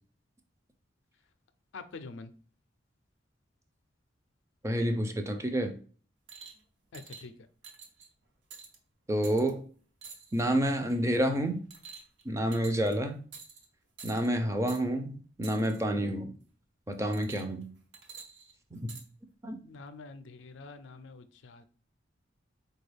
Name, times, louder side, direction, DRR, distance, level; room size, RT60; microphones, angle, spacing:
voice 1, 1.7-2.3 6.9-7.3 19.6-21.6, left 3 dB, 75° left, 0.4 m, -46 dB
voice 2, 4.6-5.8 9.1-9.6 10.3-11.6 12.3-13.2 14.0-16.3 16.9-17.7 18.7-18.9 19.4-19.6, right 1 dB, 15° right, 0.4 m, -29 dB
sound 1, 6.3-6.6 6.9-7.2 7.6-8.1 8.5-8.8 9.2-9.5 10.0-10.5 10.9-11.2 11.7-12.2 12.5-12.9 13.3-13.7 14.0-14.3 14.7-14.8 15.4-15.8 17.1-17.6 17.9-19.0 19.9-20.0, right 5 dB, 70° right, 0.8 m, -48 dB
4.5 x 2.3 x 3.3 m
head